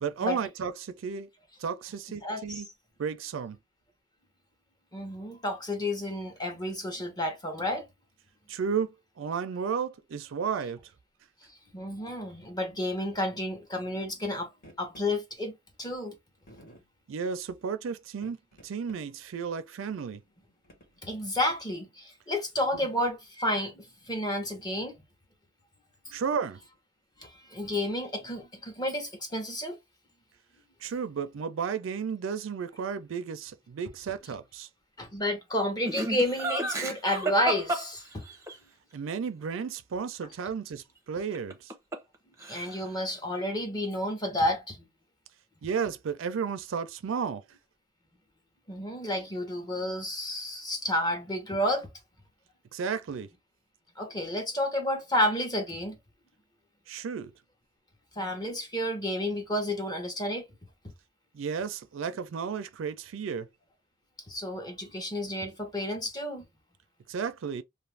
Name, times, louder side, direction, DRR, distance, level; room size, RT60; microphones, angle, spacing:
voice 1, 0.0-1.3 1.6-2.7 3.0-3.6 8.5-10.9 17.1-18.4 18.6-20.2 26.1-26.6 30.8-34.7 38.9-41.7 45.6-47.4 52.7-53.3 56.9-57.3 61.3-63.5 67.1-67.6, right 6 dB, 70° right, 0.4 m, -33 dB
voice 2, 2.2-2.6 4.9-7.9 11.7-14.5 14.8-16.2 21.0-25.0 26.1-26.2 27.2-29.8 35.0-38.2 42.5-44.9 48.7-51.9 54.0-56.0 58.2-60.5 64.3-66.4, left 1 dB, 20° left, 0.9 m, -31 dB
sound 1, 14.2-14.3 14.6-15.1 15.9-16.0 16.5-16.9 18.1-19.0 19.4-19.5 20.1-21.1, equal, 45° left, 1.3 m, -54 dB
Laughter, 35.9-38.6 41.3-42.2 42.4-43.0, right 2 dB, 15° right, 0.6 m, -32 dB
2.5 x 2.5 x 3.2 m
head